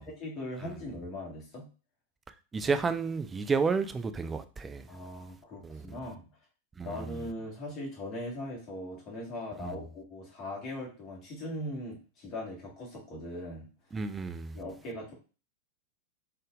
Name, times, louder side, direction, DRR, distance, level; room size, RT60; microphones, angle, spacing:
voice 1, 0.0-1.6 4.9-6.3 6.8-13.6 14.5-15.1, left 1 dB, 35° left, 1.6 m, -40 dB
voice 2, 2.5-4.9 5.6-5.8 6.8-7.1 9.6-9.9 13.9-14.6, right 4 dB, 15° right, 0.4 m, -31 dB
3.9 x 3.5 x 2.5 m
figure-of-eight pair, 90°, 0 cm